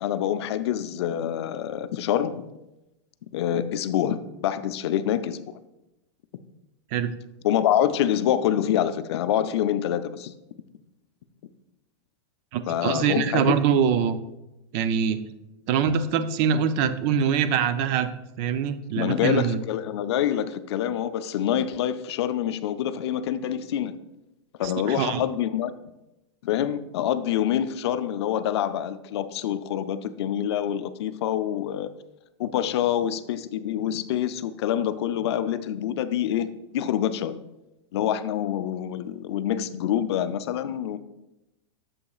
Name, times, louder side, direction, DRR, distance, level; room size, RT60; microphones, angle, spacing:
voice 1, 0.0-2.5 3.3-5.5 7.4-10.3 12.7-13.5 18.9-23.9 24.6-25.7 26.4-31.9 32.4-37.3 37.9-41.0, left 10 dB, 65° left, 12 dB, 0.5 m, -26 dB
voice 2, 12.5-14.2 14.7-15.2 15.7-18.1 18.4-19.6 24.8-25.2, right 7 dB, 40° right, 12 dB, 0.5 m, -23 dB
8.5 x 7.0 x 2.4 m, 0.93 s
supercardioid pair, 150°, 15 cm